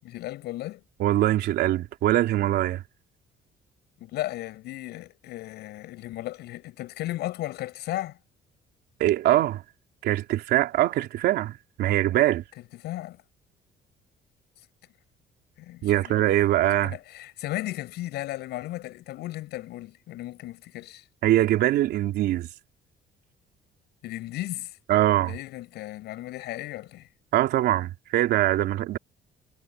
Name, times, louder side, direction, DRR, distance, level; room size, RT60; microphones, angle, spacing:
voice 1, 0.0-0.8 4.0-8.2 12.8-13.2 15.6-16.2 16.8-21.0 24.0-24.8 25.2-27.1, left 15 dB, 80° left, 7.3 m, -35 dB
voice 2, 1.0-2.8 9.0-9.6 10.0-12.4 15.8-16.9 21.2-22.5 24.9-25.3 27.3-29.0, right 14 dB, 75° right, 3.6 m, -23 dB
cardioid pair, 110°, 17 cm